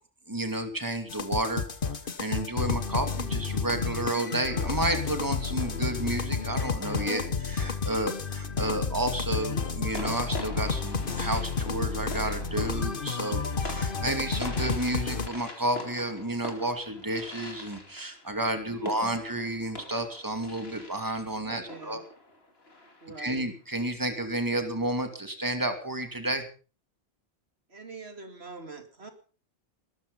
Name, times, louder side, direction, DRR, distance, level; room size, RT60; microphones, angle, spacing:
voice 1, 0.3-1.6 1.9-22.0 23.2-26.4, right 1 dB, 20° right, 7 dB, 2.6 m, -31 dB
sound 1, 1.1-15.3, left 5 dB, 60° left, 1.5 m, -31 dB
sound 2, 8.4-9.0 9.9-23.4, left 2 dB, 75° left, 3.0 m, -44 dB
voice 2, 18.6-19.1 21.4-22.0 23.0-23.5 27.7-29.1, right 3 dB, 80° right, 7 dB, 2.8 m, -44 dB
19.5 x 13.5 x 5.5 m, 0.38 s
omnidirectional pair, 1.0 m